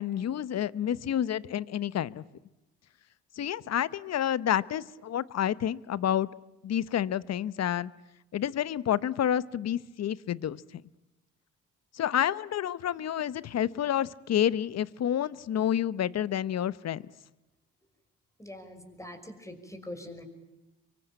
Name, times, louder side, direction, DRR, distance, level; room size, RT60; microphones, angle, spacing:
voice 1, 0.0-2.2 3.4-6.3 6.6-7.9 8.3-10.6 11.9-17.0, left 10 dB, 60° left, 18 dB, 1.0 m, -29 dB
voice 2, 18.4-20.2, left 1 dB, 10° left, 6 dB, 5.7 m, -43 dB
25.0 x 24.0 x 8.9 m, 0.99 s
cardioid pair, 90°, 30 cm